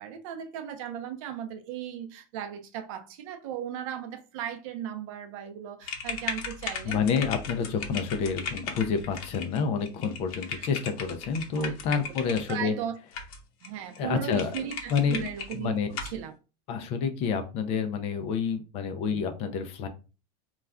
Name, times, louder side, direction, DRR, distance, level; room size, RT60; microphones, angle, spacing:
voice 1, 0.0-7.0 10.6-10.7 11.5-12.0 12.5-13.0 13.6-16.3, right 9 dB, 60° right, 0.6 m, -37 dB
sound 1, 5.8-12.5 13.1-13.7 13.9-14.0 14.3-15.5 15.9-16.2, left 5 dB, 75° left, 0.8 m, -37 dB
voice 2, 6.8-12.7 14.0-14.5 14.9-15.9 16.7-19.9, left 6 dB, 30° left, 0.3 m, -28 dB
2.3 x 2.1 x 3.5 m
supercardioid pair, 170°, 19 cm